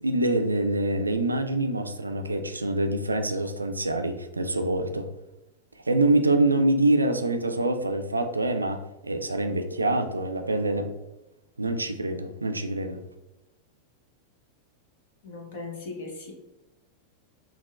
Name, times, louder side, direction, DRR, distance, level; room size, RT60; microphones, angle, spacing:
voice 1, 0.0-5.1 5.9-10.9 11.6-13.0, right 2 dB, 80° right, 7 dB, 0.3 m, -25 dB
voice 2, 15.2-16.3, left 3 dB, 55° left, -1 dB, 1.1 m, -38 dB
5.5 x 2.3 x 2.3 m, 0.96 s
figure-of-eight pair, 90°, 0 cm